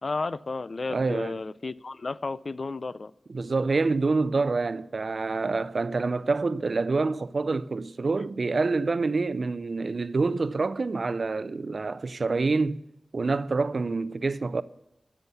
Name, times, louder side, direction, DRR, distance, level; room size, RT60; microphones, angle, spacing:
voice 1, 0.0-3.1, left 3 dB, 60° left, 0.4 m, -33 dB
voice 2, 0.9-1.4 3.3-12.8 13.1-14.6, right 3 dB, 65° right, 0.5 m, -27 dB
13.5 x 7.1 x 7.0 m
cardioid pair, 45°, 0 cm